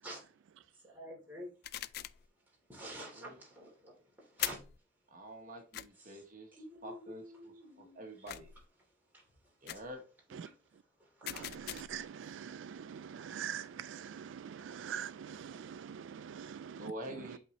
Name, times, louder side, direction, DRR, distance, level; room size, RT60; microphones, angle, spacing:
voice 1, 0.8-1.5 2.7-4.6 6.1-6.2 6.6-8.3 9.7-9.8 11.3-11.5, equal, 10° right, 2.9 m, -48 dB
sound 1, 1.6-2.3 4.4-4.8 5.7-5.9 8.3-8.7 9.7-9.9 11.2-12.0, left 13 dB, 55° left, 0.3 m, -41 dB
voice 2, 2.8-3.4 5.1-8.5 9.6-10.0 16.8-17.4, right 1 dB, 45° right, 1.3 m, -47 dB
voice 3, 11.2-17.4, right 8 dB, 80° right, 0.3 m, -44 dB
8.0 x 4.1 x 3.0 m
head